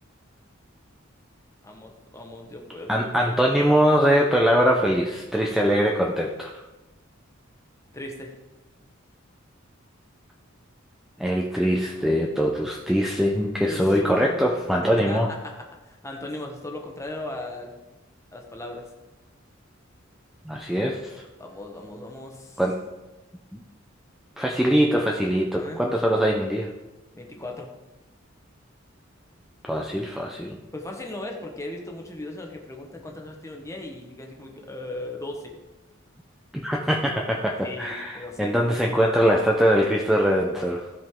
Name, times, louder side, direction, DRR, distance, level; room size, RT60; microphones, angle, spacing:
voice 1, 1.6-3.4 7.9-8.3 13.4-15.5 15.8-17.7 18.3-18.8 21.4-22.6 25.5-25.8 27.1-27.7 30.7-35.5 37.6-38.6, left 2 dB, 15° left, 1 dB, 1.2 m, -37 dB
voice 2, 2.9-6.5 11.2-15.3 20.4-21.2 22.6-22.8 23.5-23.6 24.4-26.7 29.7-30.6 36.6-40.9, equal, ahead, -1 dB, 0.6 m, -22 dB
15.5 x 5.2 x 3.7 m, 1.1 s
head